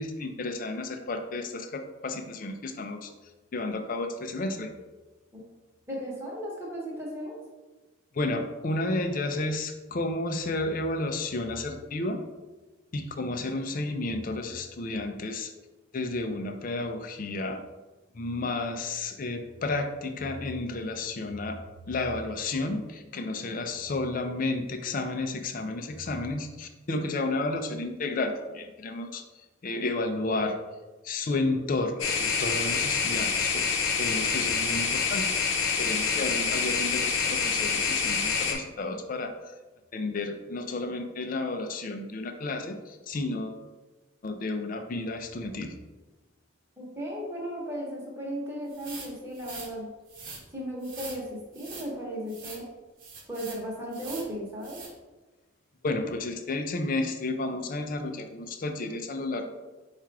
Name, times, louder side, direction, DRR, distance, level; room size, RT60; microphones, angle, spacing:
voice 1, 0.0-3.1 3.5-4.7 8.1-12.2 12.9-15.5 15.9-17.6 18.1-21.6 21.9-30.6 31.0-33.7 34.0-35.2 35.7-39.5 39.9-43.6 44.2-45.7 55.8-59.5, left 2 dB, 45° left, 6 dB, 0.4 m, -32 dB
voice 2, 5.9-7.4 46.8-49.9 50.5-52.7 53.3-54.8, equal, 10° right, -4 dB, 1.1 m, -36 dB
sound 1, 32.0-38.5, left 5 dB, 85° left, 0.7 m, -27 dB
sound 2, 48.7-49.7 50.1-50.4 50.8-51.2 51.5-51.9 52.3-52.6 53.0-53.6 53.9-54.3 54.6-54.9, right 4 dB, 45° right, 0.9 m, -43 dB
4.3 x 2.4 x 4.6 m, 1.2 s
head